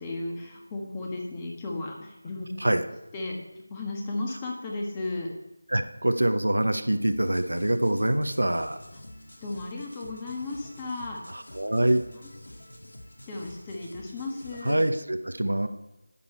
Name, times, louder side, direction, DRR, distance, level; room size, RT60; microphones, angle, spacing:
voice 1, 0.0-2.5 3.1-5.3 9.4-11.2 13.3-14.8, left 2 dB, 15° left, -1 dB, 1.4 m, -34 dB
voice 2, 5.7-8.8 11.3-12.0 14.6-15.7, right 1 dB, 85° right, 8 dB, 1.0 m, -25 dB
sound 1, 7.1-14.9, left 1 dB, 80° left, 1.9 m, -48 dB
11.0 x 8.8 x 4.5 m, 0.94 s
figure-of-eight pair, 170°, 0 cm